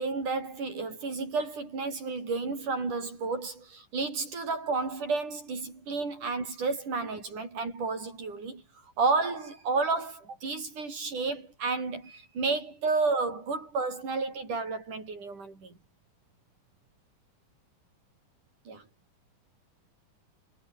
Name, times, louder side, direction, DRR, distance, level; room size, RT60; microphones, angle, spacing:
voice 1, 0.0-8.6 9.0-15.7 18.7-18.8, right 4 dB, 75° right, 8.4 m, -31 dB
omnidirectional pair, 3.7 m